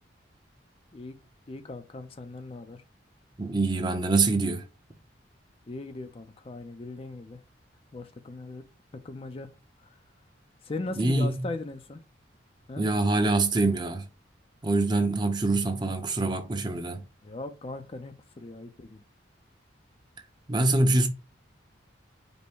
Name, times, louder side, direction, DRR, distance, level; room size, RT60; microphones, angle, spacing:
voice 1, 1.5-2.8 5.7-7.4 7.9-8.6 9.0-9.5 10.6-12.0 12.7-12.8 17.2-19.0, left 2 dB, 30° left, 0.4 m, -38 dB
voice 2, 3.4-4.6 11.0-11.4 12.8-14.0 14.6-17.0 20.5-21.1, right 2 dB, 25° right, 0.7 m, -25 dB
5.3 x 2.1 x 4.5 m
head